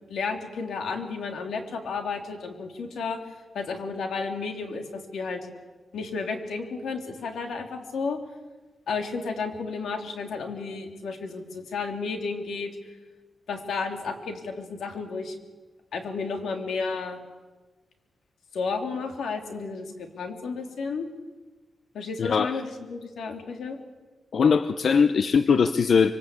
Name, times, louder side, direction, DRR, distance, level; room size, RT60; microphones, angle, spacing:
voice 1, 0.1-3.2 3.5-5.5 5.9-8.2 8.9-12.7 13.5-15.3 15.9-17.2 18.5-21.1 21.9-23.8, left 4 dB, 75° left, 5 dB, 3.3 m, -32 dB
voice 2, 22.2-22.5 24.3-26.1, left 6 dB, 50° left, 11 dB, 0.7 m, -20 dB
25.5 x 23.0 x 8.4 m, 1.3 s
wide cardioid pair, 175°, 0 cm